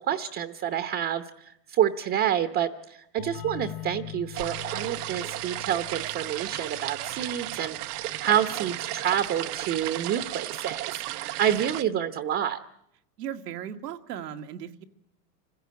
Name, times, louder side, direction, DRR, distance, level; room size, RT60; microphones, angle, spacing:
voice 1, 0.1-12.6, right 10 dB, 25° right, 9 dB, 0.9 m, -28 dB
sound 1, 3.2-8.6, left 14 dB, 85° left, 3.2 m, -43 dB
sound 2, 4.3-11.8, right 16 dB, 70° right, 0.9 m, -34 dB
voice 2, 13.2-14.8, right 9 dB, 85° right, 6 dB, 1.8 m, -37 dB
26.0 x 16.0 x 8.6 m, 0.81 s
supercardioid pair, 135°, 47 cm